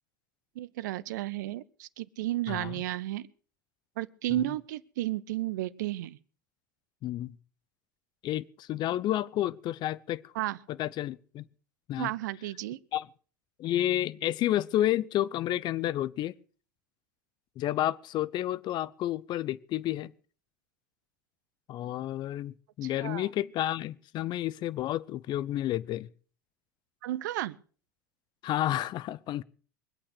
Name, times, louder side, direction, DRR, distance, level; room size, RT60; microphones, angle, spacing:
voice 1, 0.5-3.3 4.0-6.2 10.3-10.6 12.0-12.8 22.8-23.3 27.0-27.6, right 15 dB, 70° right, 0.8 m, -33 dB
voice 2, 7.0-7.4 8.2-10.3 10.7-11.4 11.9-12.1 12.9-13.1 13.6-16.3 17.6-20.1 21.7-26.1 28.4-29.4, left 13 dB, 45° left, 0.8 m, -30 dB
23.5 x 8.7 x 6.6 m
hypercardioid pair, 75°, 10 cm